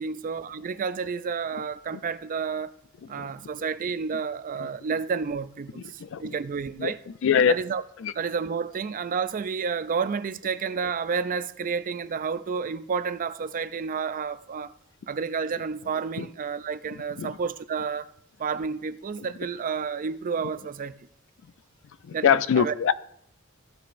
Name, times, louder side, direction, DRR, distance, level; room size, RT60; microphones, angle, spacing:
voice 1, 0.0-2.7 3.1-7.0 7.5-7.8 8.1-14.7 15.1-18.1 18.4-21.0 22.1-22.7, right 5 dB, 40° right, 0.4 m, -30 dB
voice 2, 7.2-7.5 8.0-8.1 16.2-16.3 17.2-17.3 22.1-22.9, left 8 dB, 65° left, 0.4 m, -22 dB
15.5 x 7.7 x 2.6 m
head